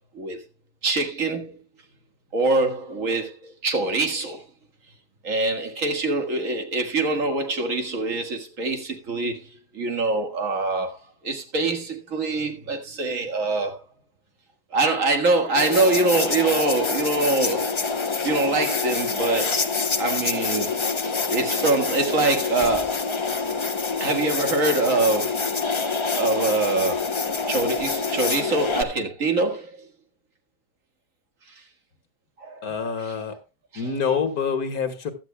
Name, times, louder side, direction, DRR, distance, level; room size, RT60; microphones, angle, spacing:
voice 1, 0.8-1.6 2.3-4.4 5.2-13.8 14.7-17.8 18.2-19.6 20.0-20.8 21.0-23.2 24.0-25.5 26.2-27.2 27.5-29.9 32.4-33.1 33.7-33.8, right 3 dB, 50° right, 2.0 m, -24 dB
sound 1, 15.6-28.8, left 4 dB, 45° left, 0.4 m, -26 dB
voice 2, 32.6-33.4 33.8-35.1, left 6 dB, 65° left, 1.9 m, -26 dB
15.5 x 12.0 x 2.2 m
omnidirectional pair, 1.8 m